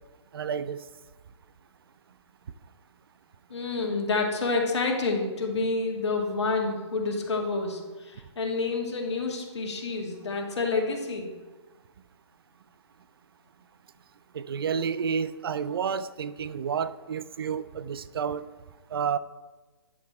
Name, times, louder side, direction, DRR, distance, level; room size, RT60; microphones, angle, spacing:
voice 1, 0.3-0.8 14.3-18.4 18.9-19.2, right 7 dB, 50° right, 14 dB, 0.5 m, -30 dB
voice 2, 3.5-11.3, left 3 dB, 70° left, 1 dB, 2.0 m, -28 dB
9.9 x 5.9 x 4.3 m, 1.2 s
hypercardioid pair, 160°, 15 cm